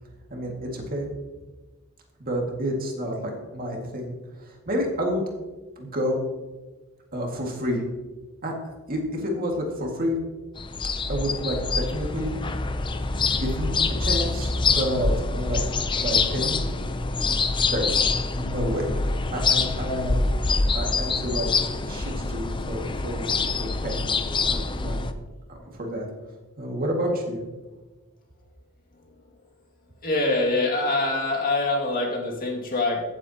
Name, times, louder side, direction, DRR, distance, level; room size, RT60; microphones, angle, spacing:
voice 1, 0.3-1.1 2.2-5.2 5.8-6.2 7.1-7.8 8.4-8.6 8.9-10.2 11.1-12.6 13.0-15.6 16.0-16.7 17.2-17.4 17.7-18.0 18.3-19.1 19.3-20.3 20.7-21.5 21.9-24.2 24.5-25.1 25.7-26.1 26.6-27.4, equal, 40° right, 0 dB, 2.0 m, -29 dB
sound 1, 10.6-25.1, left 4 dB, 20° left, 0.5 m, -25 dB
voice 2, 30.0-33.0, left 2 dB, 40° left, 1 dB, 2.1 m, -24 dB
15.5 x 7.8 x 2.9 m, 1.2 s
head